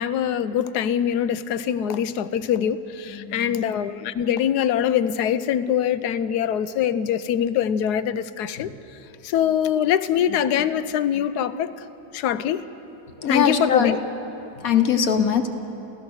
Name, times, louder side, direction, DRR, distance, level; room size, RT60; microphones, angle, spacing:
voice 1, 0.0-8.7 9.2-11.8 12.1-12.7 13.3-14.0, left 9 dB, 80° left, 14 dB, 1.2 m, -23 dB
voice 2, 3.1-3.6 8.6-8.7 13.2-14.0 14.6-15.5, left 7 dB, 60° left, 7 dB, 1.5 m, -21 dB
28.5 x 15.0 x 6.4 m, 2.9 s
omnidirectional pair, 1.7 m